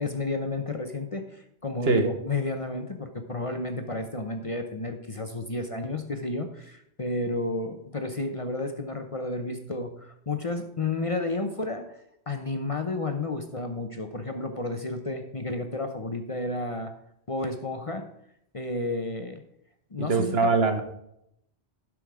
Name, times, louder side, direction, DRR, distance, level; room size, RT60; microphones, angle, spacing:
voice 1, 0.0-11.8 12.3-16.9 17.3-18.1 18.5-19.4 19.9-20.6, left 2 dB, 35° left, 6 dB, 0.8 m, -31 dB
voice 2, 20.1-20.8, right 4 dB, 65° right, 7 dB, 1.3 m, -22 dB
11.5 x 6.2 x 4.8 m, 0.76 s
omnidirectional pair, 1.2 m